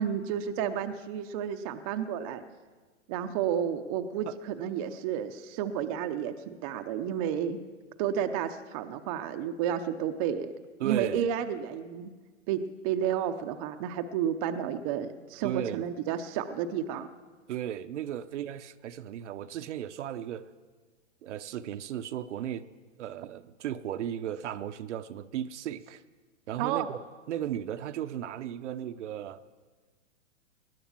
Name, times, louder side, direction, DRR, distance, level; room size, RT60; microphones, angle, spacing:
voice 1, 0.0-2.4 3.1-7.6 8.0-10.5 10.8-12.1 12.5-17.1 26.6-26.9, right 9 dB, 30° right, 8 dB, 0.6 m, -31 dB
voice 2, 10.8-11.3 15.4-15.8 17.5-20.5 21.2-22.7 23.0-26.0 26.5-29.5, right 10 dB, 60° right, 11 dB, 0.8 m, -35 dB
19.5 x 9.6 x 7.3 m, 1.4 s
hypercardioid pair, 140°, 39 cm